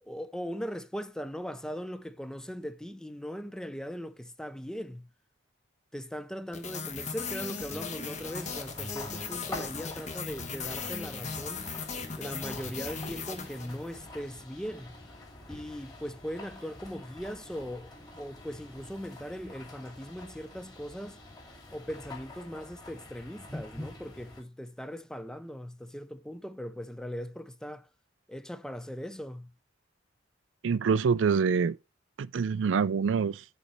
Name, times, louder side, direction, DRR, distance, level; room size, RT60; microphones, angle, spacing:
voice 1, 0.0-5.1 5.9-11.7 12.2-14.9 15.5-21.2 21.7-27.9 28.3-29.5, equal, 5° left, 0.4 m, -39 dB
sound 1, 6.5-14.1, left 5 dB, 40° left, 1.3 m, -38 dB
sound 2, 8.1-24.4, left 1 dB, 20° left, 2.5 m, -46 dB
voice 2, 30.6-31.8 32.2-33.4, right 6 dB, 85° right, 0.4 m, -26 dB
8.2 x 4.2 x 5.2 m
head